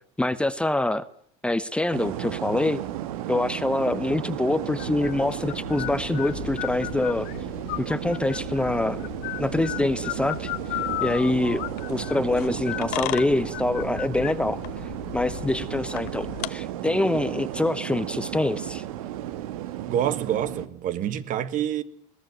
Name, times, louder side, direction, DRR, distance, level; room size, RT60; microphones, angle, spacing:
voice 1, 0.2-1.1 1.4-2.8 3.3-7.3 7.8-9.1 9.4-10.5 11.0-11.6 11.9-14.6 15.1-18.8, left 1 dB, 5° left, 0.9 m, -25 dB
sound 1, 1.9-20.7, right 12 dB, 90° right, 1.4 m, -34 dB
sound 2, 4.8-16.5, left 18 dB, 65° left, 1.2 m, -35 dB
voice 2, 19.9-21.8, right 10 dB, 50° right, 1.5 m, -27 dB
21.5 x 16.0 x 9.3 m
supercardioid pair, 120°, 18 cm